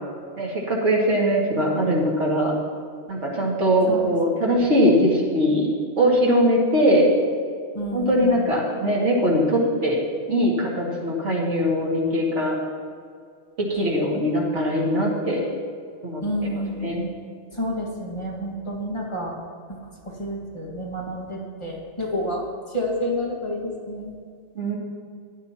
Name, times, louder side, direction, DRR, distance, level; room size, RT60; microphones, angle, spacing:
voice 1, 0.4-2.5 3.1-5.7 6.0-7.1 7.9-10.0 10.3-12.6 13.6-15.4 16.0-16.2 16.8-17.0 24.6-24.8, equal, 90° right, -4 dB, 2.6 m, -21 dB
voice 2, 7.7-8.6 14.1-14.2 16.2-17.1 17.5-19.3 19.7-19.8 20.0-22.4 22.7-24.1, equal, 25° left, -4 dB, 2.0 m, -29 dB
15.5 x 11.0 x 3.0 m, 2.2 s
omnidirectional pair, 1.2 m